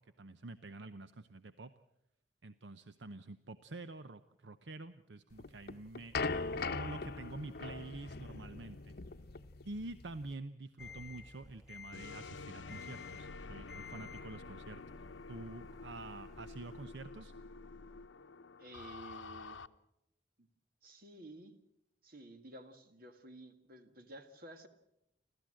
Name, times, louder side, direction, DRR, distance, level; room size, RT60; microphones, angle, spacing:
voice 1, 0.0-1.7 2.4-6.2 6.5-8.9 9.6-14.8 15.3-17.3, right 2 dB, 70° right, 11 dB, 0.7 m, -47 dB
sound 1, 5.4-10.3, left 4 dB, 55° left, 0.8 m, -40 dB
sound 2, 10.8-16.8, left 5 dB, 5° right, 4.1 m, -54 dB
sound 3, 11.9-19.7, left 4 dB, 90° left, 0.7 m, -49 dB
voice 2, 18.6-19.6 20.4-20.5 20.8-21.6 22.0-24.7, right 1 dB, 50° right, 8 dB, 1.8 m, -52 dB
29.5 x 13.0 x 7.7 m, 0.83 s
head